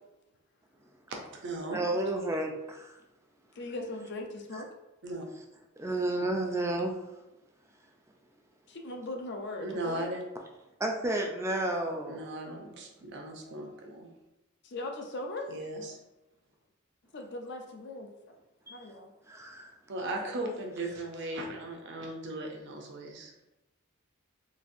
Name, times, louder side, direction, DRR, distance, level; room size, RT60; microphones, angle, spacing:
voice 1, 1.1-1.8 5.0-5.2 9.6-10.2 12.1-14.1 15.5-16.0 19.9-23.3, right 2 dB, 55° right, 1 dB, 0.6 m, -37 dB
voice 2, 1.7-2.9 5.8-6.9 10.8-12.3 18.7-18.8 19.3-19.7, right 1 dB, 15° right, 1 dB, 0.4 m, -31 dB
voice 3, 3.6-4.7 8.7-10.1 14.6-15.5 17.1-18.1 18.7-19.1, left 2 dB, 55° left, 3 dB, 0.5 m, -39 dB
4.0 x 2.5 x 2.6 m, 0.96 s
head